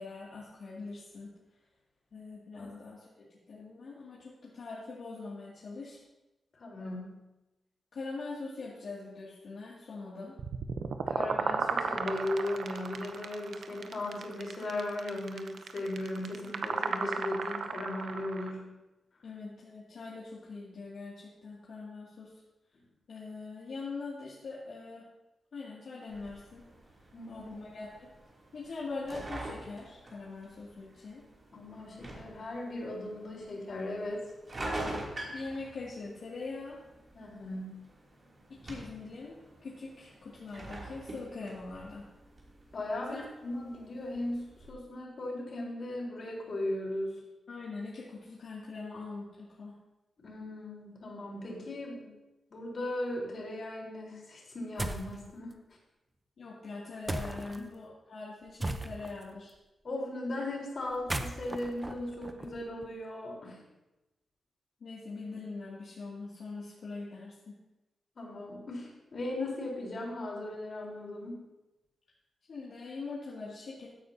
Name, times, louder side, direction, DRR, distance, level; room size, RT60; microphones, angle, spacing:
voice 1, 0.0-1.3 2.1-6.0 7.9-10.4 19.2-22.3 23.1-25.1 25.5-26.7 27.3-28.1 28.5-31.3 35.3-36.8 38.5-42.1 43.1-43.2 47.5-49.8 56.4-59.5 64.8-67.5 72.5-73.9, left 3 dB, 70° left, -7 dB, 2.3 m, -42 dB
voice 2, 6.5-7.2 11.1-18.7 27.1-27.5 31.5-34.3 37.1-37.9 42.7-47.2 50.2-52.1 52.5-55.5 57.5-57.6 59.8-63.6 68.2-71.4, left 1 dB, 50° left, -3 dB, 3.9 m, -37 dB
sound 1, 10.4-18.5, right 5 dB, 70° right, 0.6 m, -34 dB
sound 2, 26.1-44.7, right 1 dB, 40° right, 2.7 m, -46 dB
sound 3, 54.8-55.2 57.1-57.6 58.6-59.2 60.9-62.9, right 1 dB, 15° right, 0.7 m, -36 dB
15.0 x 9.5 x 2.8 m, 1.0 s
wide cardioid pair, 120°, 0 cm